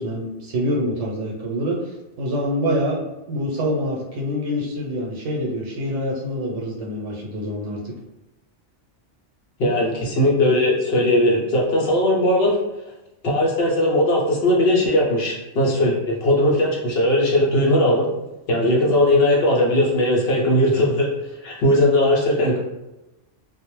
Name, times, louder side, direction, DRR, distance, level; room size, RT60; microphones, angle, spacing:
voice 1, 0.0-7.9, equal, 75° right, -2 dB, 1.0 m, -26 dB
voice 2, 9.6-12.6 13.2-18.1 18.5-21.1 21.4-22.6, left 1 dB, 60° left, -3 dB, 0.7 m, -18 dB
2.3 x 2.0 x 3.0 m, 0.98 s
omnidirectional pair, 1.3 m